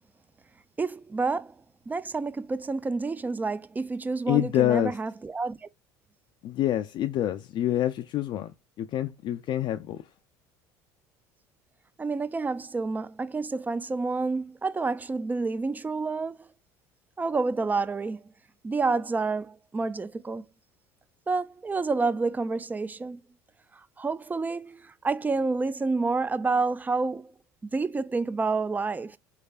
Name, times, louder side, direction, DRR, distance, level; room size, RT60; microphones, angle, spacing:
voice 1, 0.8-1.6 1.9-5.7 12.0-16.5 17.2-18.2 18.6-20.5 21.3-23.2 24.0-27.3 27.6-29.2, right 3 dB, 15° right, 0.4 m, -29 dB
voice 2, 4.3-5.0 6.4-8.5 8.8-10.0, left 12 dB, 50° left, 0.4 m, -26 dB
4.6 x 3.3 x 2.4 m
hypercardioid pair, 75°, 10 cm